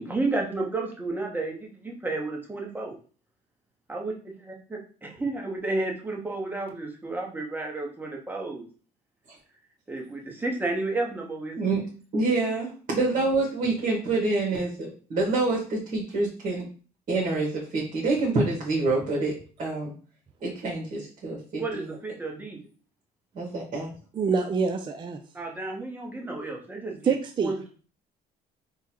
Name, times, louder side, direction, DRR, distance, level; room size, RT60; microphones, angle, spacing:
voice 1, 0.0-2.9 3.9-4.1 5.2-8.7 9.9-11.7 21.6-22.6 25.3-27.1 27.4-27.6, right 2 dB, 10° right, 0 dB, 1.0 m, -31 dB
voice 2, 12.1-16.6 17.1-19.9 20.4-21.8 23.3-23.9, right 3 dB, 50° right, -5 dB, 1.5 m, -27 dB
voice 3, 24.2-25.2 27.1-27.5, right 5 dB, 30° right, 5 dB, 0.4 m, -25 dB
3.6 x 2.2 x 4.4 m, 0.40 s
cardioid pair, 110°, 17 cm